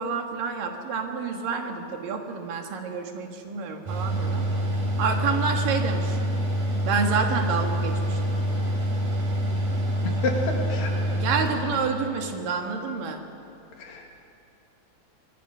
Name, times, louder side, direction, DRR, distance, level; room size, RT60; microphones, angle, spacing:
voice 1, 0.0-4.5 5.0-6.2 6.8-8.4 10.8-13.2, right 5 dB, 70° right, 4 dB, 3.2 m, -28 dB
Mechanical fan, 3.9-12.3, equal, 55° right, 5.2 m, -26 dB
voice 2, 9.9-10.9 13.8-14.2, left 2 dB, 70° left, 1 dB, 3.8 m, -30 dB
25.5 x 22.0 x 5.5 m, 2.6 s
omnidirectional pair, 4.1 m